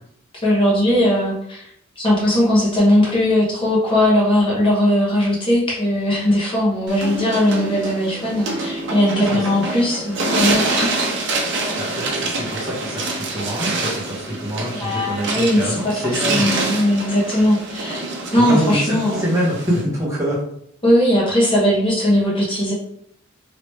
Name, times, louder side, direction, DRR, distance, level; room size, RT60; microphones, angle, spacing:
voice 1, 0.4-1.7 2.0-11.0 11.4-11.6 14.7-16.0 16.3-18.0 18.3-19.3 20.8-22.7, left 1 dB, 25° left, -5 dB, 1.1 m, -19 dB
sound 1, 6.9-19.8, right 2 dB, 60° right, 0.7 m, -26 dB
voice 2, 9.1-9.6 11.8-16.5 18.4-20.4, equal, 15° right, -6 dB, 0.9 m, -25 dB
3.1 x 2.9 x 3.1 m, 0.70 s
head